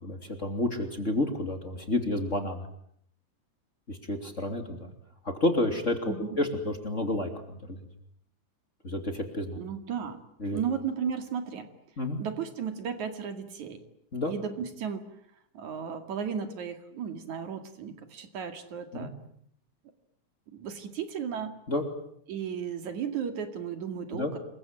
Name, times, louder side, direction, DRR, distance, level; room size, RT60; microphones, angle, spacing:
voice 1, 0.0-2.7 3.9-4.9 5.4-7.8 8.8-9.6 10.4-10.6 12.0-12.2 14.1-14.3 18.9-19.1 21.7-21.8 24.1-24.3, left 1 dB, 25° left, 5 dB, 3.2 m, -30 dB
voice 2, 6.1-6.4 9.5-10.2 10.5-11.7 12.2-13.8 14.2-15.1 15.5-19.1 20.5-21.5 22.3-24.4, right 7 dB, 75° right, 7 dB, 3.7 m, -34 dB
28.0 x 22.5 x 9.1 m, 0.70 s
omnidirectional pair, 3.4 m